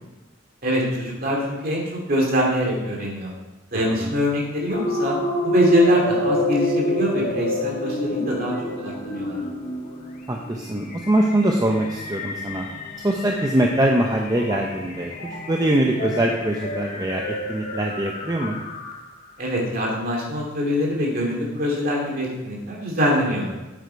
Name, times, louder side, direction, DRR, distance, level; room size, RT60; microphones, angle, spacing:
voice 1, 0.6-3.3 3.7-5.1 5.4-9.4 19.4-23.5, equal, 45° right, -2 dB, 2.5 m, -23 dB
voice 2, 3.7-4.1 10.3-12.7 13.0-18.6, right 1 dB, 20° right, 0 dB, 0.6 m, -23 dB
sound 1, 4.7-19.2, left 1 dB, 40° left, 1.3 m, -29 dB
8.4 x 7.9 x 4.6 m, 1.1 s
head